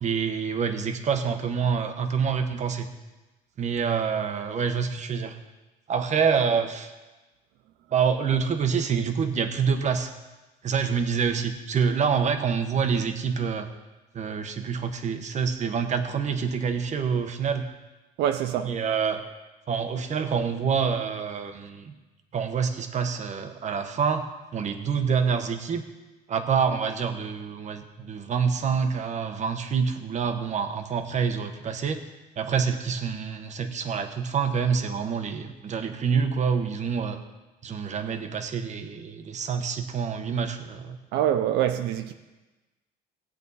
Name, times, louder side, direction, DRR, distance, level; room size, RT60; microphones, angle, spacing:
voice 1, 0.0-2.9 3.6-5.4 5.9-6.9 7.9-10.1 10.6-13.7 14.1-17.6 18.6-19.2 19.7-21.9 22.3-24.3 24.5-25.8 26.3-32.0 32.4-37.2 37.6-41.0, right 6 dB, 45° right, 1.2 m, -26 dB
voice 2, 18.2-18.8 41.1-42.1, right 10 dB, 85° right, 0.6 m, -25 dB
18.0 x 8.1 x 4.2 m
cardioid pair, 110°, 17 cm